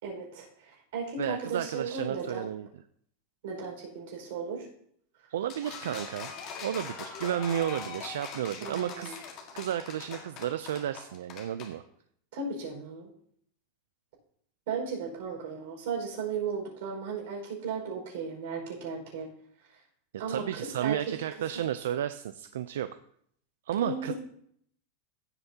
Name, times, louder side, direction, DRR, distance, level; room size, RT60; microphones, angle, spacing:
voice 1, 0.0-2.5 3.4-4.7 8.6-9.2 12.3-13.1 14.7-19.3 20.2-21.0 23.8-24.1, right 5 dB, 70° right, -1 dB, 5.0 m, -35 dB
voice 2, 1.2-2.7 5.3-6.3 6.6-9.2 9.5-11.8 20.3-22.9 23.7-24.1, right 10 dB, 90° right, 11 dB, 0.4 m, -32 dB
sound 1, 5.5-11.7, left 6 dB, 35° left, 1.7 m, -42 dB
15.5 x 7.9 x 2.8 m, 0.66 s
supercardioid pair, 160°, 0 cm